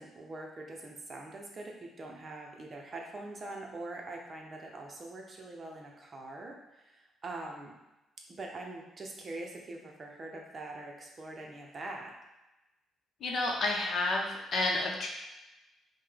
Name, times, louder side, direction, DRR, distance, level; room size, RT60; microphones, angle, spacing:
voice 1, 0.0-7.7 8.4-12.1, right 2 dB, 35° right, 0 dB, 0.7 m, -43 dB
voice 2, 13.2-15.1, left 2 dB, 55° left, 0 dB, 0.8 m, -30 dB
5.5 x 2.2 x 3.3 m, 1.0 s
cardioid pair, 120°, 0 cm